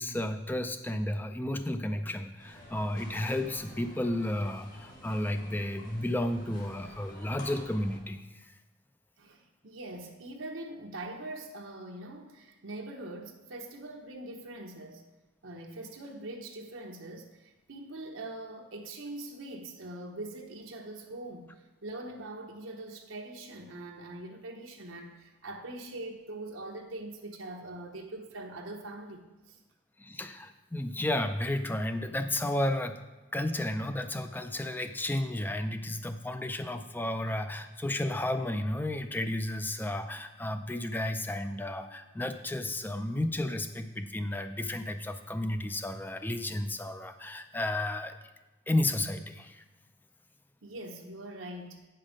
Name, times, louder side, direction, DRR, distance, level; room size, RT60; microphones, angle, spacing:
voice 1, 0.0-8.6 30.0-33.0 33.3-48.1 48.7-49.6, left 1 dB, 10° left, 9 dB, 0.4 m, -32 dB
sound 1, 2.4-8.0, left 1 dB, 45° left, 1.7 m, -50 dB
voice 2, 9.2-15.0 15.4-21.5 21.8-29.6 37.3-37.4 50.6-51.9, right 2 dB, 85° right, 1 dB, 1.0 m, -43 dB
8.9 x 5.7 x 5.0 m, 1.1 s
head